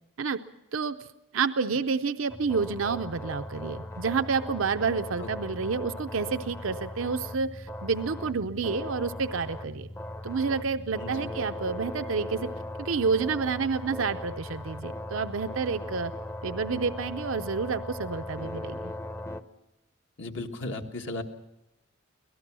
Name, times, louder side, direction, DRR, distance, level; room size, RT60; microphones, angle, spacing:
voice 1, 1.3-9.9 10.2-12.5 12.8-16.1 16.4-18.8, right 5 dB, 75° right, 9 dB, 0.6 m, -29 dB
sound 1, 2.3-19.4, left 1 dB, 15° left, 0.7 m, -38 dB
voice 2, 5.2-5.6 11.0-11.3 20.2-21.2, left 2 dB, 65° left, 4 dB, 1.6 m, -36 dB
24.0 x 18.0 x 6.2 m, 0.93 s
head